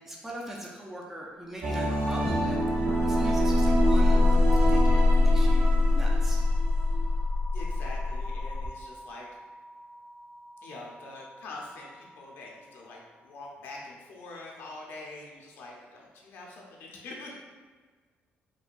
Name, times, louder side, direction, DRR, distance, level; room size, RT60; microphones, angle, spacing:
voice 1, 0.0-6.4, right 1 dB, 10° right, -2 dB, 0.4 m, -41 dB
sound 1, 1.6-7.0, right 2 dB, 60° right, 0.8 m, -28 dB
sound 2, 2.8-12.0, left 2 dB, 35° right, 1.3 m, -25 dB
voice 2, 5.3-5.7 7.5-9.3 10.6-17.4, left 2 dB, 70° left, -2 dB, 0.6 m, -44 dB
4.7 x 2.2 x 2.5 m, 1.5 s
cardioid pair, 155°, 4 cm